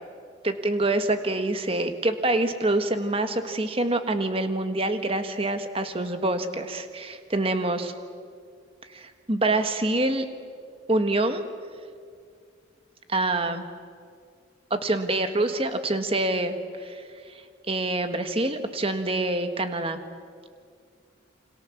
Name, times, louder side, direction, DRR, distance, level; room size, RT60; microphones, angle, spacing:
voice 1, 0.4-7.9 8.9-10.2 10.9-11.4 13.1-13.6 14.7-17.0 17.3-20.0, right 2 dB, 30° right, 8 dB, 1.5 m, -26 dB
28.5 x 25.5 x 7.2 m, 2.2 s
head